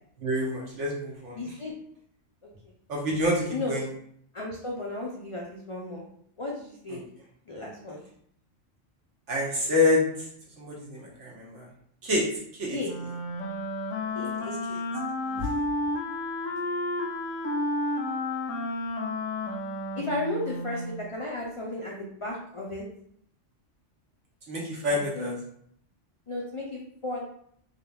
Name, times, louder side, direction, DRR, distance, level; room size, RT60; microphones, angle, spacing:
voice 1, 0.2-1.6 2.9-3.9 6.9-7.0 9.3-10.3 10.6-11.7 12.0-12.3 12.5-12.8 14.4-14.8 15.4-15.5 24.5-25.3, left 2 dB, 75° right, -3 dB, 1.3 m, -28 dB
voice 2, 1.3-1.7 3.5-3.8 4.3-6.1 6.4-7.0 7.5-8.0 12.7-12.9 14.1-14.6 14.9-15.4 20.0-20.8 21.1-22.8 24.9-25.4 26.3-27.2, left 2 dB, 60° left, -2 dB, 0.3 m, -34 dB
Wind instrument woodwind instrument, 12.8-21.0, left 1 dB, 85° left, 0.9 m, -31 dB
3.5 x 2.8 x 2.2 m, 0.65 s
omnidirectional pair, 1.3 m